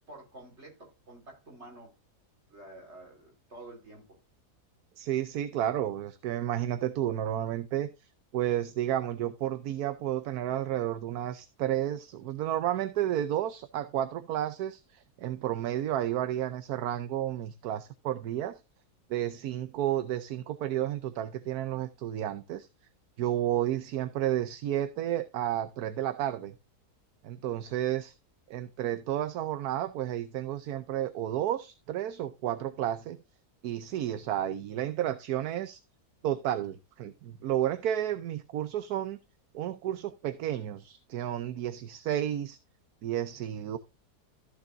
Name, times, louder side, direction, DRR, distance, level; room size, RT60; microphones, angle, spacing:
voice 1, 0.1-1.9 2.5-4.2, right 2 dB, 40° right, 4.5 m, -49 dB
voice 2, 5.0-7.9 8.3-18.6 19.1-22.7 23.2-26.5 27.2-28.1 28.5-33.2 33.6-35.8 36.2-39.2 39.5-42.6 43.0-43.8, right 12 dB, 70° right, 1.2 m, -31 dB
14.5 x 7.1 x 2.5 m
omnidirectional pair, 1.7 m